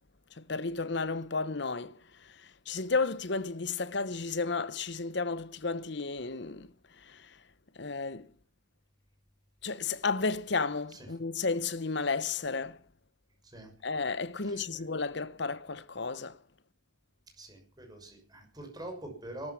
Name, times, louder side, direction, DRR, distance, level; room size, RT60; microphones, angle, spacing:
voice 1, 0.3-7.4 7.7-8.3 9.6-12.8 13.8-16.4, left 4 dB, 60° left, 0.9 m, -33 dB
voice 2, 14.4-14.8 17.4-19.5, right 1 dB, 20° right, 6.3 m, -45 dB
17.5 x 13.5 x 5.9 m
head